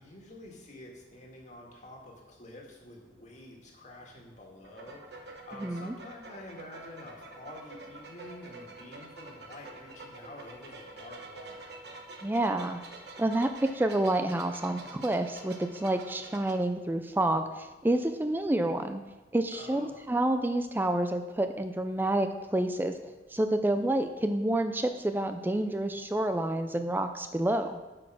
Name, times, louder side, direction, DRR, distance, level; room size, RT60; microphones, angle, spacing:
voice 1, 0.0-5.1 5.4-11.8 19.5-20.0, left 1 dB, 40° left, 0 dB, 1.9 m, -48 dB
sound 1, 4.6-16.6, right 2 dB, 65° right, 1.2 m, -47 dB
voice 2, 5.6-5.9 12.2-12.8 13.2-19.0 19.3-23.0 23.3-27.8, right 1 dB, 10° right, 8 dB, 0.4 m, -29 dB
7.8 x 6.2 x 6.1 m, 1.2 s
head